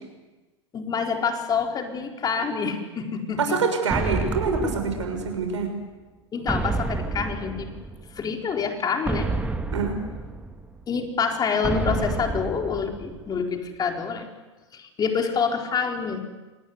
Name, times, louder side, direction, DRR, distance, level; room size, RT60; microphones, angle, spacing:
voice 1, 0.7-3.6 6.3-7.7 8.1-9.3 10.9-14.3 14.7-16.2, left 6 dB, 25° left, 3 dB, 4.2 m, -27 dB
voice 2, 3.4-5.7 9.7-10.0, right 5 dB, 80° right, 4 dB, 6.4 m, -25 dB
sound 1, 3.9-5.7 6.5-8.2 9.1-10.8 11.6-13.4, right 3 dB, 10° right, 1.8 m, -29 dB
27.0 x 19.5 x 8.2 m, 1.2 s
hypercardioid pair, 100°, 15 cm